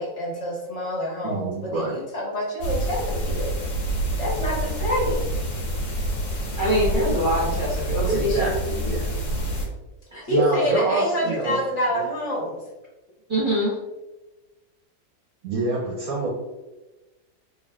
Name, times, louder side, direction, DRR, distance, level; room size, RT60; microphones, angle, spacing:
voice 1, 0.0-3.5 4.2-5.3 10.2-12.6, equal, 45° left, -4 dB, 1.3 m, -26 dB
voice 2, 1.2-1.9 8.1-9.1 10.3-11.6 11.9-12.0 15.4-16.3, right 3 dB, 65° right, -3 dB, 1.0 m, -27 dB
sound 1, 2.6-9.6, right 1 dB, 65° left, 1.6 m, -27 dB
voice 3, 6.6-8.5 10.1-10.2 11.2-11.3 13.3-13.8, equal, 35° right, -8 dB, 1.1 m, -24 dB
4.1 x 3.2 x 2.4 m, 1.1 s
omnidirectional pair, 2.0 m